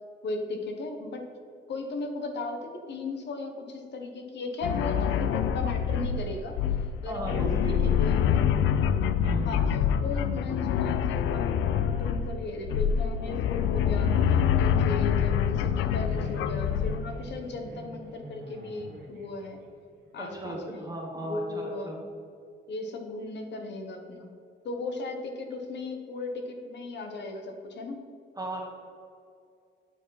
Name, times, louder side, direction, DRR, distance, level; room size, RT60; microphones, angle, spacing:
voice 1, 0.2-1.2 1.7-6.6 7.0-8.7 9.4-9.6 10.0-19.6 20.1-22.0 22.7-24.3 24.6-28.1, left 3 dB, 60° left, 5 dB, 1.1 m, -36 dB
sound 1, 4.6-17.1, left 8 dB, 80° left, 0.4 m, -26 dB
voice 2, 7.1-8.2 9.2-9.5 20.2-22.0 28.3-28.6, right 1 dB, 20° right, -2 dB, 1.3 m, -35 dB
sound 2, 11.7-20.8, right 2 dB, 60° right, 1.5 m, -48 dB
8.8 x 4.7 x 4.1 m, 2.4 s
cardioid pair, 90°, 20 cm